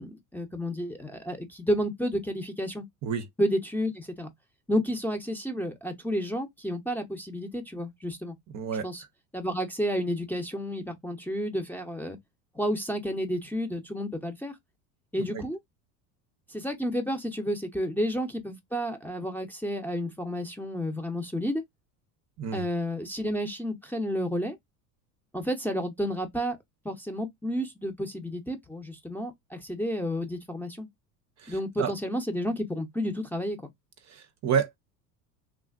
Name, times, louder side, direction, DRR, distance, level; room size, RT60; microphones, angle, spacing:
voice 1, 0.0-2.8 3.4-4.3 4.7-8.3 8.8-9.0 9.3-12.2 12.5-14.5 15.1-15.6 16.5-21.6 22.5-24.6 25.3-26.6 26.8-30.9 31.5-33.7, equal, 5° left, 0.6 m, -31 dB
voice 2, 8.5-8.9 22.4-22.6 31.4-31.9 34.1-34.8, right 7 dB, 40° right, 0.6 m, -29 dB
3.3 x 2.4 x 2.3 m
hypercardioid pair, 90°, 43 cm